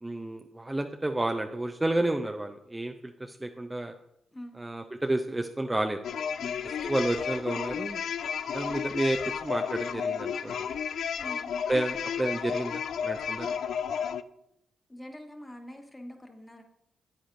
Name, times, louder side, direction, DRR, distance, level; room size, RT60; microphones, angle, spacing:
voice 1, 0.0-3.9 4.6-6.0 6.8-8.0 8.5-10.6 11.7-13.5, right 1 dB, 15° right, 5 dB, 0.5 m, -30 dB
sound 1, 6.0-14.2, left 7 dB, 70° left, 0.3 m, -32 dB
voice 2, 6.4-6.7 11.2-11.5 14.9-16.6, left 1 dB, 15° left, 4 dB, 1.4 m, -45 dB
9.3 x 8.6 x 2.6 m, 0.79 s
supercardioid pair, 55°, 0 cm